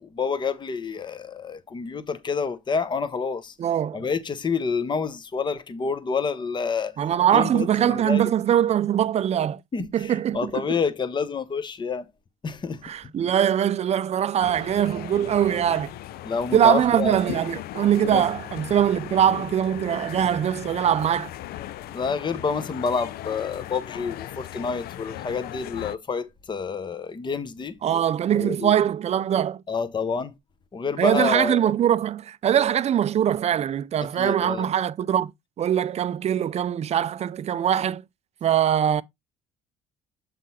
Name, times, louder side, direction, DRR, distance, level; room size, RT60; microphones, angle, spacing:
voice 1, 0.0-3.5 3.9-6.9 7.3-8.3 9.7-12.1 12.4-12.8 16.2-17.2 18.0-18.2 21.9-27.7 28.2-28.7 29.7-30.3 30.7-31.7 34.2-34.7, left 5 dB, 25° left, 0.8 m, -28 dB
voice 2, 3.6-4.0 7.0-10.8 12.8-15.9 16.5-21.3 27.8-29.6 31.0-35.3 35.6-38.0 38.4-39.0, right 10 dB, 40° right, 0.4 m, -22 dB
sound 1, 14.4-26.0, left 14 dB, 65° left, 0.4 m, -38 dB
7.5 x 3.8 x 4.1 m
cardioid pair, 110°, 17 cm